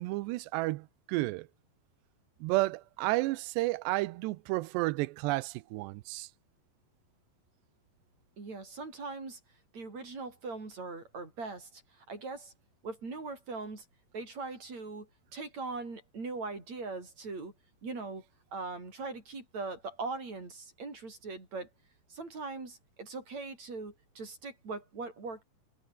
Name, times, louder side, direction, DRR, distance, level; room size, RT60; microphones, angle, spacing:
voice 1, 0.0-1.5 2.4-6.3, right 20 dB, 85° right, 2.9 m, -31 dB
voice 2, 8.4-9.4 9.7-12.5 12.8-13.9 14.1-17.5 17.8-18.2 18.5-21.7 22.1-25.4, right 3 dB, 40° right, 7.3 m, -40 dB
omnidirectional pair, 4.8 m